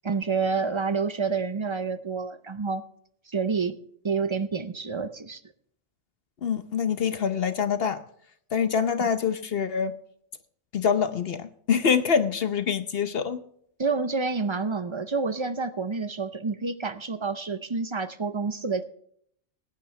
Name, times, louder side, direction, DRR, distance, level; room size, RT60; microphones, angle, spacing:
voice 1, 0.0-2.8 3.3-3.8 4.0-5.4 13.8-18.8, right 4 dB, 35° right, 0.5 m, -28 dB
voice 2, 6.4-8.0 8.5-9.9 10.7-13.4, left 6 dB, 55° left, 0.9 m, -25 dB
21.5 x 9.8 x 3.3 m
omnidirectional pair, 1.2 m